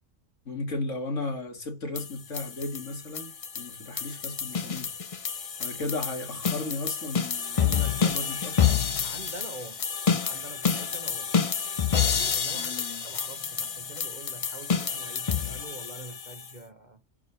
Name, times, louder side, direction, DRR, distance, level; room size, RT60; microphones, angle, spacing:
voice 1, 0.5-5.0 5.6-8.8 12.5-13.0, left 2 dB, 70° left, 2.4 m, -35 dB
sound 1, 2.0-16.5, left 7 dB, 40° left, 0.5 m, -29 dB
voice 2, 7.5-8.3 9.0-9.9 10.3-11.3 12.0-12.8 13.0-17.0, right 2 dB, 40° right, 1.1 m, -44 dB
6.5 x 4.9 x 5.6 m
omnidirectional pair, 1.4 m